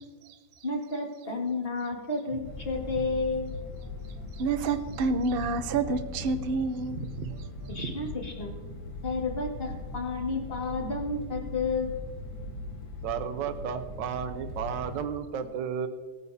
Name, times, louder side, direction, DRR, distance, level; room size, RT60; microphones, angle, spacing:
voice 1, 0.6-3.5 7.7-8.5 9.0-11.9, left 3 dB, 30° left, -1 dB, 2.1 m, -31 dB
sound 1, 2.4-15.0, left 2 dB, 65° left, 2.1 m, -40 dB
voice 2, 4.4-7.4 7.8-7.9, right 4 dB, 55° right, 8 dB, 0.6 m, -28 dB
voice 3, 13.0-15.9, right 7 dB, 80° right, 8 dB, 1.4 m, -33 dB
19.0 x 9.5 x 2.8 m, 1.4 s
omnidirectional pair, 2.0 m